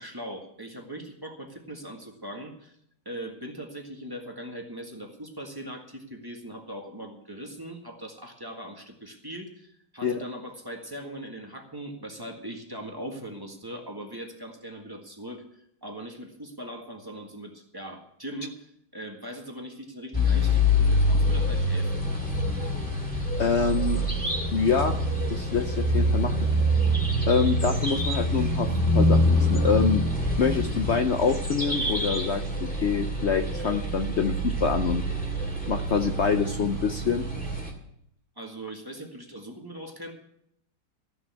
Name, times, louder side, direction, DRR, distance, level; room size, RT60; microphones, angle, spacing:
voice 1, 0.0-2.7 3.0-15.4 15.8-22.1 38.4-40.1, right 1 dB, 10° right, 2 dB, 1.6 m, -40 dB
sound 1, 20.1-37.7, left 1 dB, 5° left, 2.1 m, -25 dB
voice 2, 23.4-24.1 24.5-25.0 25.3-26.4 27.3-30.0 30.4-35.0 35.7-37.3, left 5 dB, 80° left, 7 dB, 0.6 m, -26 dB
14.0 x 7.0 x 8.3 m, 0.73 s
omnidirectional pair, 2.1 m